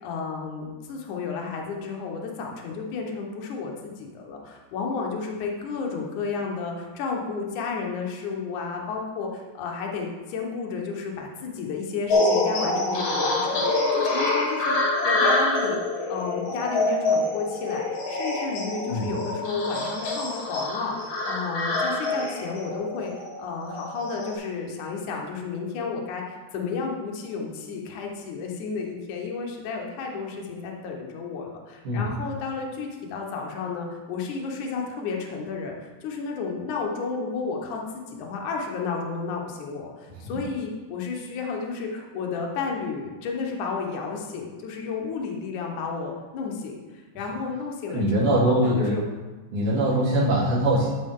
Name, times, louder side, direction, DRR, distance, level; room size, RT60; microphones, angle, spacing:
voice 1, 0.0-14.8 15.0-15.8 16.1-23.1 23.4-49.0, left 4 dB, 70° left, 0 dB, 1.9 m, -32 dB
sound 1, 12.1-24.3, left 2 dB, 55° left, 1.8 m, -26 dB
voice 2, 47.9-48.9 49.5-50.9, right 1 dB, 50° right, -9 dB, 3.6 m, -22 dB
12.5 x 6.4 x 3.7 m, 1.3 s
omnidirectional pair, 5.1 m